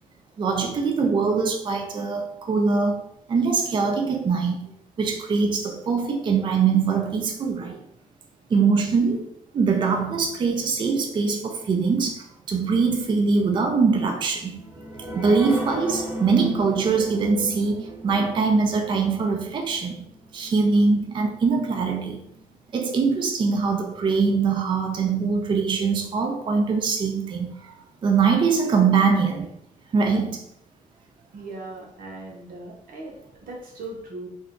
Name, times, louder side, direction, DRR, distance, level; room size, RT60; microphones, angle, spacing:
voice 1, 0.4-3.0 3.3-7.8 8.5-14.6 15.2-22.3 22.7-29.5 29.9-30.4, right 5 dB, 35° right, 0.4 m, -23 dB
sound 1, 14.4-21.5 21.9-22.0 22.4-22.5, equal, 15° right, 1.1 m, -37 dB
voice 2, 31.3-34.3, right 2 dB, 85° right, 0.9 m, -38 dB
2.6 x 2.2 x 3.5 m
cardioid pair, 130°, 14 cm